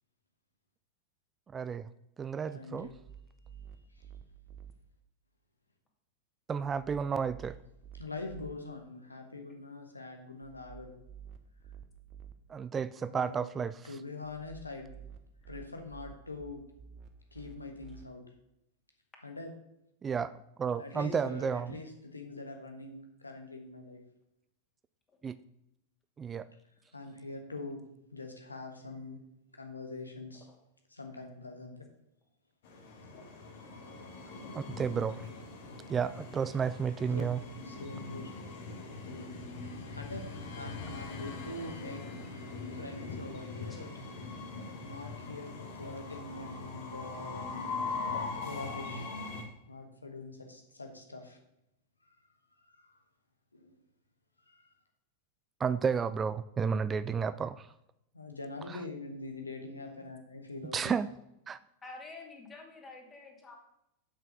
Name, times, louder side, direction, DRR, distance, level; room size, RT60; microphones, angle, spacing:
voice 1, 1.5-1.9 2.2-2.9 6.5-7.6 12.5-13.9 20.0-20.3 20.6-21.8 25.2-25.4 26.2-26.5 34.5-35.3 35.9-37.4 55.6-57.7 58.7-58.8 60.7-61.1 61.5-61.6, right 6 dB, 20° right, 15 dB, 0.3 m, -32 dB
voice 2, 2.5-2.9 3.9-4.0 7.9-11.0 13.1-13.5 13.8-14.9 15.5-16.6 17.3-18.2 19.2-19.5 20.8-24.0 26.9-27.8 28.1-29.2 29.5-30.5 30.9-31.9 37.1-37.3 37.6-38.3 39.9-43.9 44.8-47.5 48.4-49.1 49.7-51.4 52.0-52.2 52.7-53.0 53.5-53.8 54.5-54.7 58.1-61.0, left 3 dB, 90° left, 3 dB, 1.4 m, -44 dB
sound 1, 2.8-4.7 6.6-8.5 10.4-12.3 14.2-18.0, right 7 dB, 40° right, 0.9 m, -51 dB
Train, 32.6-49.4, left 4 dB, 60° left, 1.9 m, -41 dB
voice 3, 61.8-63.5, left 3 dB, 20° left, 1 dB, 2.6 m, -49 dB
7.6 x 5.9 x 6.6 m, 0.84 s
figure-of-eight pair, 90°, 0 cm